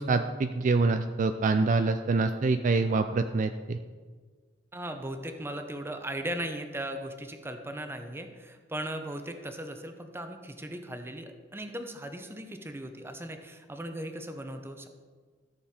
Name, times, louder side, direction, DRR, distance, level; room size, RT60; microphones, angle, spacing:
voice 1, 0.0-3.8, right 3 dB, 45° right, 8 dB, 0.4 m, -26 dB
voice 2, 4.7-14.9, right 1 dB, 15° right, 6 dB, 0.8 m, -38 dB
13.5 x 6.7 x 4.3 m, 1.5 s
head